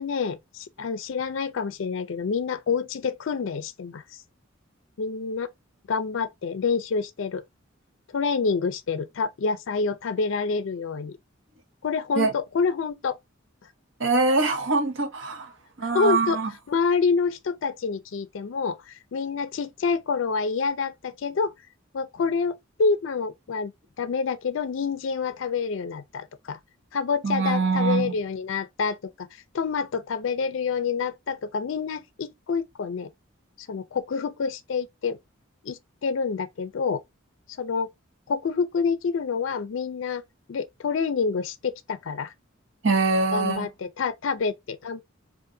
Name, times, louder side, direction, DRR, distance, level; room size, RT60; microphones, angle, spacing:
voice 1, 0.0-4.2 5.0-5.5 5.9-7.4 8.1-11.2 11.8-13.2 15.8-16.4 16.7-21.5 21.9-23.7 24.0-26.6 26.9-33.1 33.6-35.2 35.6-37.0 37.6-37.9 38.3-40.2 40.5-42.3 43.3-45.0, left 5 dB, 70° left, 0.4 m, -27 dB
voice 2, 14.0-15.5 15.8-16.5 27.2-28.1 42.8-43.7, right 3 dB, 65° right, 0.8 m, -23 dB
3.6 x 2.5 x 2.6 m
head